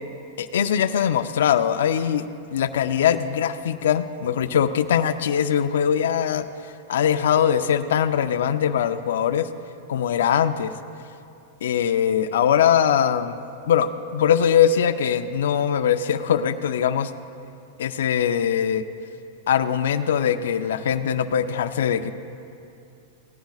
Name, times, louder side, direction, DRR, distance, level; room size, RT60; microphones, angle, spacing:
voice 1, 0.4-6.5 6.9-9.5 9.9-10.7 11.6-13.4 13.7-17.1 17.8-18.8 19.5-22.1, left 8 dB, 80° left, 10 dB, 0.5 m, -21 dB
18.0 x 14.5 x 2.4 m, 2.6 s
supercardioid pair, 150°, 0 cm